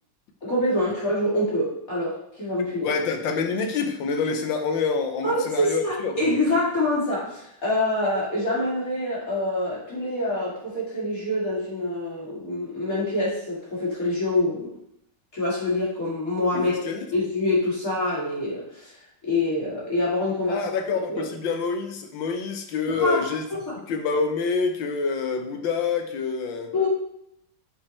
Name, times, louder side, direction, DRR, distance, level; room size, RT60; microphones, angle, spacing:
voice 1, 0.4-2.9 5.2-14.7 15.3-16.8 17.1-18.9 19.2-20.6 21.1-21.2 22.9-23.2 23.7-23.8 26.7-26.9, left 1 dB, 45° left, -7 dB, 3.2 m, -25 dB
voice 2, 2.8-6.4 16.5-17.1 20.5-23.4 23.9-26.7, left 5 dB, 75° left, 6 dB, 1.5 m, -27 dB
7.5 x 4.8 x 4.4 m, 0.75 s
omnidirectional pair, 2.1 m